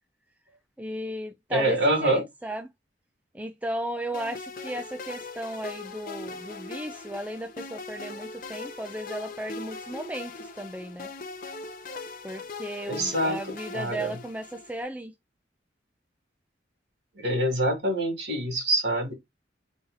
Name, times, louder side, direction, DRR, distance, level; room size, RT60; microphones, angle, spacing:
voice 1, 0.8-2.7 3.3-11.1 12.2-15.1, right 1 dB, 10° right, 0.4 m, -35 dB
voice 2, 1.5-2.2 12.9-13.4 13.7-14.1 17.2-19.1, right 1 dB, 70° right, 2.3 m, -25 dB
sound 1, 4.1-14.8, left 4 dB, 50° left, 0.7 m, -40 dB
4.0 x 2.7 x 4.0 m
head